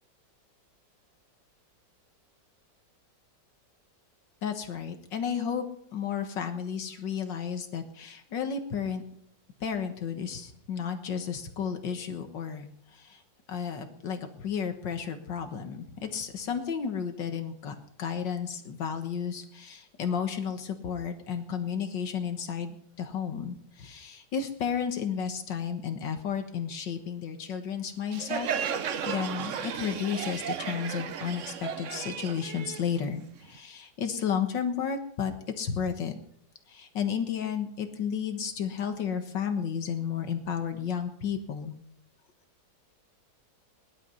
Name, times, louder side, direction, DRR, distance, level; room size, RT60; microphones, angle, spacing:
voice 1, 4.4-5.7 5.9-9.0 9.6-13.2 13.5-28.5 28.7-35.3 35.6-36.2 36.7-41.7, left 7 dB, 80° left, 7 dB, 2.1 m, -33 dB
Crowd, 28.1-33.6, right 8 dB, 55° right, 1.0 m, -34 dB
20.0 x 11.5 x 5.6 m, 0.68 s
omnidirectional pair, 1.9 m